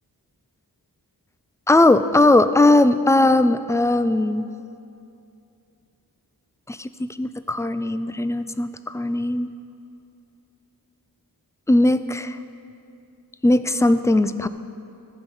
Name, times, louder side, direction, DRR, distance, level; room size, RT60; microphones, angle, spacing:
voice 1, 1.7-4.5 6.7-9.5 11.7-12.4 13.4-14.5, left 2 dB, 10° left, 12 dB, 0.3 m, -19 dB
14.5 x 5.4 x 5.6 m, 2.6 s
wide cardioid pair, 45°, 39 cm